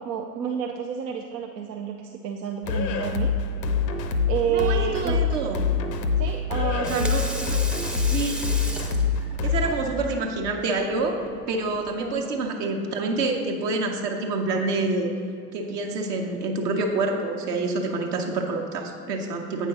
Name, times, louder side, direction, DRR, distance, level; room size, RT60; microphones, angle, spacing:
voice 1, 0.0-3.3 4.3-5.2 6.2-7.2 7.4-7.5 8.1-8.2 12.0-12.4, right 8 dB, 85° right, 2 dB, 0.6 m, -30 dB
sound 1, 2.6-9.7, left 5 dB, 80° left, 0.7 m, -25 dB
voice 2, 4.5-5.6 6.8-7.2 7.5-7.6 8.1-8.4 9.4-11.2 11.5-15.1 15.5-19.7, right 3 dB, 70° right, 2 dB, 1.0 m, -27 dB
Water tap faucet / Sink (filling or washing), 6.6-12.1, equal, ahead, 0.4 m, -37 dB
8.1 x 5.5 x 3.7 m, 2.4 s
figure-of-eight pair, 70°, 50 cm